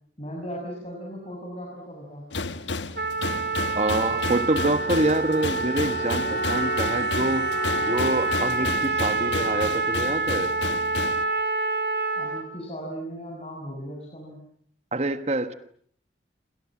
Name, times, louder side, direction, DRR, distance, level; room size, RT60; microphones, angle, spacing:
voice 1, 0.2-2.2 12.1-14.4, equal, 35° left, -1 dB, 6.7 m, -37 dB
sound 1, 2.3-11.2, left 3 dB, 85° left, 1.3 m, -32 dB
Trumpet, 3.0-12.5, right 3 dB, 65° right, 4.4 m, -27 dB
voice 2, 3.7-7.5 7.8-10.5 14.9-15.5, right 2 dB, 35° right, 10 dB, 1.4 m, -26 dB
Bowed string instrument, 4.4-8.9, left 2 dB, 60° left, 2.1 m, -36 dB
29.0 x 27.0 x 7.4 m, 0.63 s
head